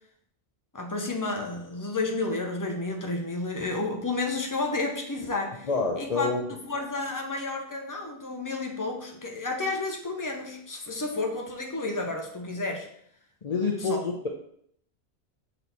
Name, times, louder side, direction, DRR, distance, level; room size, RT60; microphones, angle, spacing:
voice 1, 0.7-5.7 6.0-12.9 13.8-14.0, left 3 dB, 20° left, 2 dB, 0.9 m, -31 dB
voice 2, 5.6-6.4 13.4-14.3, left 4 dB, 40° left, 0 dB, 0.7 m, -27 dB
6.4 x 4.3 x 4.1 m, 0.66 s
omnidirectional pair, 1.1 m